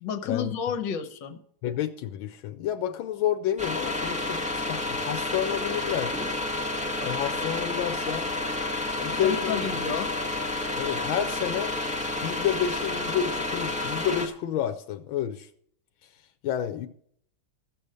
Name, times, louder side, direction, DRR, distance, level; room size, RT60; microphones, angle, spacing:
voice 1, 0.0-1.4 9.1-10.1, left 6 dB, 65° left, 1.7 m, -31 dB
voice 2, 1.6-6.2 7.0-8.3 9.0-9.6 10.8-11.8 12.2-15.5 16.4-16.9, left 10 dB, 85° left, 1.5 m, -30 dB
sound 1, 3.6-14.3, left 2 dB, 5° right, 1.0 m, -30 dB
14.5 x 7.0 x 6.4 m
omnidirectional pair, 2.2 m